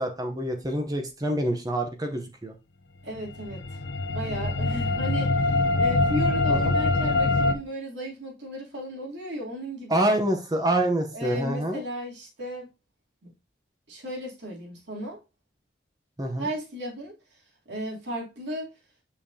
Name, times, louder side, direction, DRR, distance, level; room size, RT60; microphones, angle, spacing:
voice 1, 0.0-2.5 6.5-6.7 9.9-11.8 16.2-16.5, right 1 dB, 20° right, 4 dB, 0.8 m, -26 dB
voice 2, 3.0-3.8 4.1-10.2 11.1-12.7 13.2-13.3 13.9-15.2 16.4-17.4 17.7-18.6, right 1 dB, 70° right, -2 dB, 2.9 m, -35 dB
sound 1, 3.2-7.5, left 2 dB, 65° left, 0.7 m, -24 dB
6.6 x 5.6 x 2.7 m, 0.27 s
head